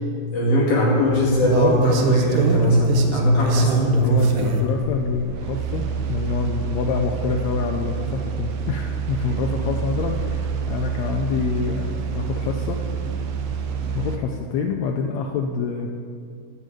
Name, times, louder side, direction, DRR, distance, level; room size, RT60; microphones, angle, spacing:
voice 1, 0.3-4.5, equal, 60° left, -6 dB, 3.6 m, -19 dB
sound 1, 1.0-14.2, right 5 dB, 75° right, 2.3 m, -26 dB
voice 2, 4.0-12.8 13.9-15.9, left 5 dB, 90° left, 2 dB, 1.6 m, -26 dB
13.0 x 5.5 x 7.7 m, 2.3 s
omnidirectional pair, 3.9 m